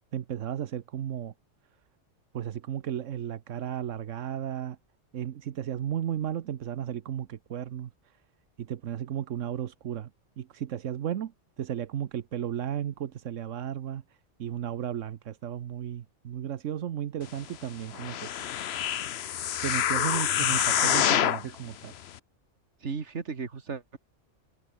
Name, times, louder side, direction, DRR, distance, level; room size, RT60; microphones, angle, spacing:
voice 1, 0.1-1.3 2.3-4.8 5.1-8.2 8.6-10.1 10.4-11.3 11.6-18.5 19.6-21.9, right 10 dB, 85° right, 1.2 m, -34 dB
sound 1, 17.9-21.5 22.1-22.2, left 10 dB, 65° left, 0.9 m, -26 dB
voice 2, 22.8-24.0, right 5 dB, 70° right, 2.2 m, -35 dB
omnidirectional pair, 1.3 m